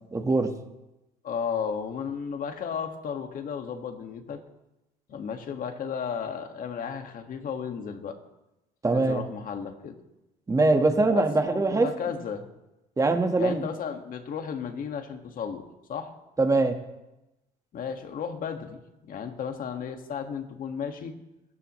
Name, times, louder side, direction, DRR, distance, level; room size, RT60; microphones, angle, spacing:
voice 1, 0.1-0.5 8.8-9.2 10.5-11.9 13.0-13.6 16.4-16.8, right 3 dB, 20° right, 5 dB, 1.6 m, -22 dB
voice 2, 1.2-4.4 5.1-8.2 8.9-10.0 11.0-12.5 13.4-16.1 17.7-18.8 19.1-21.1, left 7 dB, 55° left, 5 dB, 2.0 m, -34 dB
27.5 x 14.0 x 3.2 m, 0.97 s
cardioid pair, 110°, 17 cm